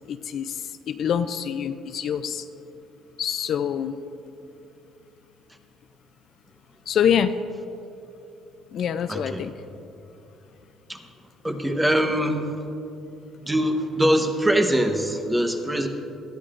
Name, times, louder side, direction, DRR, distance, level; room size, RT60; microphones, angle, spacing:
voice 1, 0.1-2.4 3.2-4.0 6.9-7.4 8.7-9.5, left 8 dB, 55° left, 10 dB, 0.4 m, -25 dB
voice 2, 9.1-9.5 10.9-11.0 11.4-12.6 13.5-15.9, right 1 dB, 10° right, 5 dB, 1.0 m, -23 dB
19.5 x 13.0 x 2.5 m, 2.8 s
cardioid pair, 120°, 0 cm